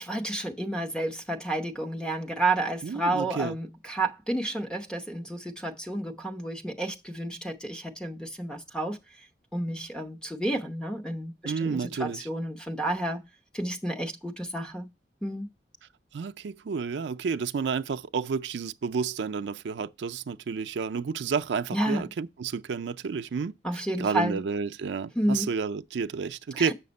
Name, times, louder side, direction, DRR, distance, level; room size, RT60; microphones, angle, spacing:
voice 1, 0.0-9.0 9.5-13.2 13.5-14.9 15.2-15.5 21.7-22.1 23.6-24.4 25.1-25.5 26.5-26.7, right 1 dB, 5° left, 0.9 m, -31 dB
voice 2, 2.8-3.5 11.4-12.3 16.1-23.5 24.0-26.7, right 5 dB, 85° right, 0.4 m, -30 dB
7.7 x 5.8 x 5.3 m
head